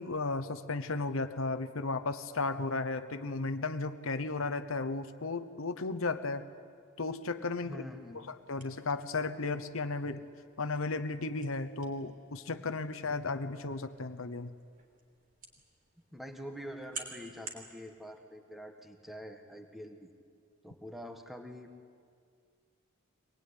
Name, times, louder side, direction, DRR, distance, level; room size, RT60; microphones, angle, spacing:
voice 1, 0.0-6.5 7.0-7.8 8.1-10.2 10.6-14.5, left 3 dB, 65° left, 10 dB, 0.9 m, -34 dB
voice 2, 7.6-8.2 16.1-20.1 20.6-21.7, equal, ahead, 4 dB, 1.5 m, -45 dB
sound 1, 7.9-17.7, right 4 dB, 40° right, 3.6 m, -52 dB
24.0 x 19.5 x 9.9 m, 2.2 s
head